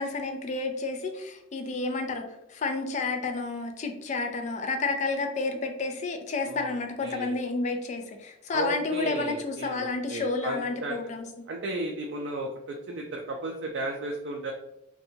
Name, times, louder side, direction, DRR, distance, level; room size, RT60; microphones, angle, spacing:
voice 1, 0.0-2.2 2.5-11.5, left 3 dB, 35° left, 5 dB, 0.3 m, -30 dB
voice 2, 6.5-7.4 8.5-11.0 11.5-14.5, right 2 dB, 60° right, 1 dB, 0.3 m, -34 dB
2.8 x 2.2 x 2.6 m, 0.81 s
head